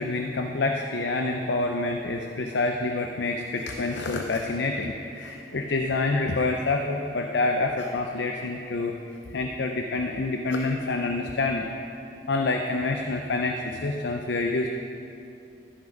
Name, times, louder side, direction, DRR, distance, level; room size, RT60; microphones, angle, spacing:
voice 1, 0.0-9.0 9.3-11.7 12.3-14.7, left 3 dB, 85° left, 3 dB, 0.6 m, -27 dB
13.5 x 5.9 x 5.2 m, 2.7 s
head